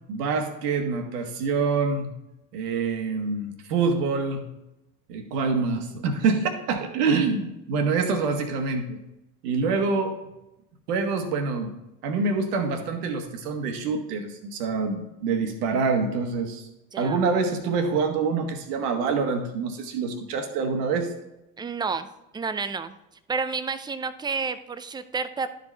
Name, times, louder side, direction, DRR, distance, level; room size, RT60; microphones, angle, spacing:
voice 1, 0.1-2.1 2.5-4.5 5.1-9.0 9.4-10.2 10.9-11.7 12.0-16.7 17.0-21.1, right 4 dB, 75° right, 5 dB, 1.4 m, -26 dB
voice 2, 21.6-22.1 22.3-23.0 23.3-25.5, right 5 dB, 10° right, 12 dB, 0.3 m, -30 dB
11.5 x 5.2 x 3.3 m, 0.91 s
hypercardioid pair, 70°, 47 cm